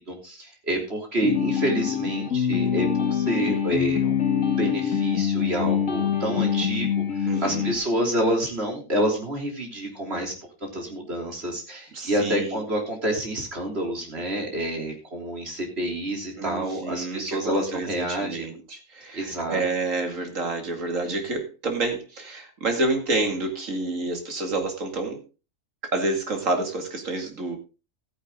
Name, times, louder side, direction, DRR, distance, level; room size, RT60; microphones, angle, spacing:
voice 1, 0.0-6.9 7.2-10.3 10.6-18.5 19.1-19.6, right 1 dB, 50° right, 1 dB, 3.6 m, -28 dB
sound 1, 1.2-7.8, left 8 dB, 70° left, 2.2 m, -25 dB
voice 2, 7.3-7.7 11.9-12.6 16.4-17.4 17.7-25.2 25.8-27.6, right 2 dB, 75° right, 4 dB, 2.7 m, -28 dB
14.0 x 9.6 x 3.7 m, 0.31 s
omnidirectional pair, 1.4 m